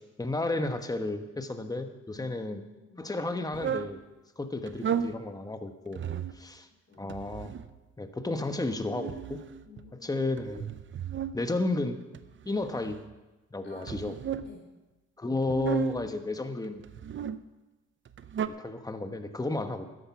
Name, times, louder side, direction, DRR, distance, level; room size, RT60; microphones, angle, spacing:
voice 1, 0.0-2.6 3.0-4.0 4.4-6.0 6.3-6.7 7.0-7.5 8.0-9.4 10.0-10.7 11.3-12.0 12.4-13.0 13.5-14.1 15.2-16.8 18.5-19.8, left 2 dB, 10° left, 7 dB, 1.2 m, -32 dB
voice 2, 2.1-3.1 6.9-7.1 9.6-10.1 13.6-14.0 14.4-14.7, left 3 dB, 40° left, -1 dB, 4.4 m, -52 dB
sound 1, 3.5-3.9 4.7-5.2 5.9-6.4 7.1-7.8 8.6-9.9 10.4-11.4 12.1-13.1 13.8-14.5 15.4-16.1 16.8-17.4 18.1-18.5, right 8 dB, 40° right, 0.7 m, -34 dB
13.0 x 10.5 x 5.9 m, 1.1 s
cardioid pair, 90°, 30 cm